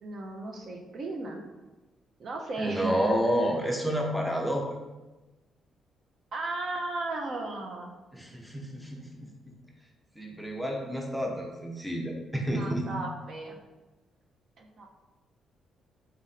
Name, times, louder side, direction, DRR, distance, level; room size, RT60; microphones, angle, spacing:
voice 1, 0.0-1.4 2.2-2.9 6.3-7.9 12.5-13.6 14.6-14.9, right 2 dB, 50° right, 2 dB, 0.5 m, -35 dB
voice 2, 2.6-4.6 8.1-9.5 10.2-12.9, equal, ahead, 0 dB, 0.6 m, -30 dB
4.0 x 2.5 x 4.0 m, 1.1 s
cardioid pair, 125°, 0 cm